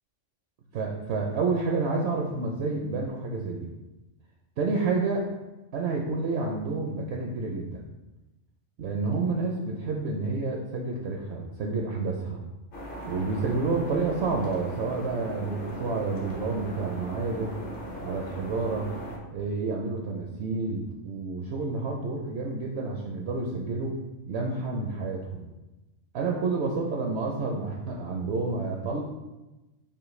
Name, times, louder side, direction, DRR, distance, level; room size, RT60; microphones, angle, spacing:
voice 1, 0.7-3.7 4.6-5.2 5.7-7.8 8.8-12.4 13.0-17.5 18.0-18.9 19.3-23.9 24.3-25.5 26.1-29.0, right 3 dB, 65° right, -1 dB, 0.8 m, -29 dB
sound 1, 12.7-19.2, equal, 50° left, 0.9 m, -38 dB
5.4 x 2.2 x 3.1 m, 1.0 s
omnidirectional pair, 1.3 m